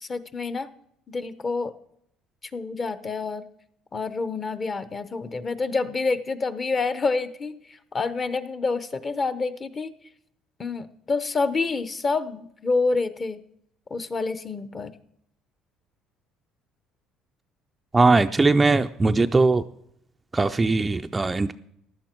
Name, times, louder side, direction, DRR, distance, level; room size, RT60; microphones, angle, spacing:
voice 1, 0.0-0.7 1.1-1.7 2.5-3.5 3.9-7.6 7.9-9.9 10.6-13.4 13.9-14.9, left 4 dB, 25° left, 13 dB, 0.7 m, -27 dB
voice 2, 17.9-19.6 20.3-21.5, right 3 dB, 15° right, 8 dB, 0.4 m, -20 dB
15.0 x 11.0 x 4.5 m, 0.73 s
cardioid pair, 130°, 0 cm